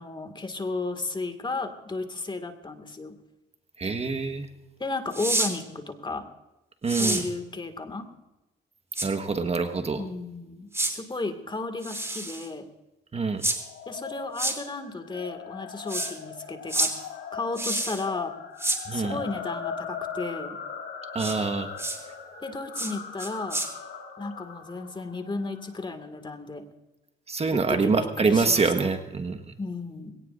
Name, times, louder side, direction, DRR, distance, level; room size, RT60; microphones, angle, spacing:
voice 1, 0.0-3.2 4.8-6.3 6.9-8.1 10.0-12.7 13.9-16.9 17.3-18.3 18.9-20.6 22.4-23.6 24.2-26.6 27.5-28.9 29.6-30.2, left 3 dB, 25° left, 8 dB, 2.1 m, -34 dB
voice 2, 3.8-4.5 6.8-7.2 9.0-10.0 13.1-13.4 18.9-19.2 21.1-21.7 27.3-29.5, right 4 dB, 30° right, 7 dB, 1.4 m, -25 dB
sound 1, 5.1-5.5 6.9-7.2 9.0-9.1 10.7-10.9 11.8-12.5 13.4-13.6 14.4-14.6 15.9-16.1 16.7-16.9 17.6-18.0 18.6-18.8 21.2-21.4 21.8-22.0 22.8-22.9 23.2-23.7, right 2 dB, 15° right, 3.1 m, -28 dB
sound 2, 13.5-25.9, left 6 dB, 80° left, 3.0 m, -39 dB
21.0 x 18.0 x 2.6 m, 1.0 s
cardioid pair, 90°, 20 cm